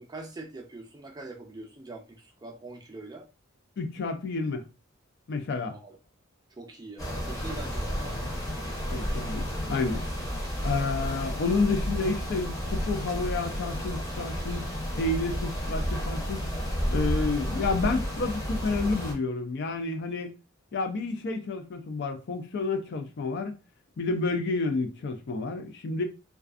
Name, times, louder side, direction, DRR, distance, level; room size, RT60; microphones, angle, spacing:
voice 1, 0.0-3.3 5.7-6.0 6.5-8.2, right 2 dB, 20° right, 0.4 m, -43 dB
voice 2, 3.8-4.6 5.3-5.8 8.9-10.0 10.6-14.7 14.9-16.5 16.9-20.3 20.7-23.5 24.0-26.0, left 3 dB, 55° left, 0.4 m, -30 dB
sound 1, 7.0-19.1, equal, 15° left, 0.7 m, -31 dB
2.4 x 2.3 x 2.4 m
head